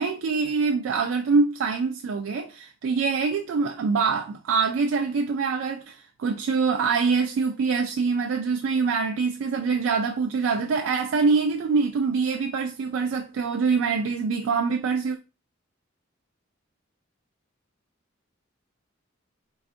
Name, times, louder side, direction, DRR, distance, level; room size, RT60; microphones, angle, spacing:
voice 1, 0.0-15.2, right 4 dB, 80° right, 0.3 m, -24 dB
3.4 x 2.3 x 2.4 m
head